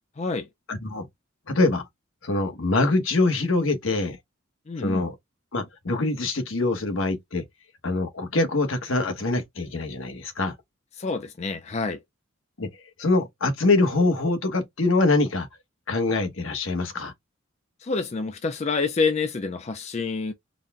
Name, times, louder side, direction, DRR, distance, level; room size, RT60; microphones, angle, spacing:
voice 1, 0.2-0.5 4.7-5.1 11.0-12.0 17.8-20.3, left 4 dB, 30° left, 0.4 m, -27 dB
voice 2, 0.7-1.1 1.5-1.8 2.2-4.2 4.8-5.1 5.5-7.4 7.8-10.5 12.6-12.7 13.0-15.5 15.9-17.1, left 2 dB, 70° left, 1.1 m, -24 dB
4.0 x 2.2 x 3.5 m
head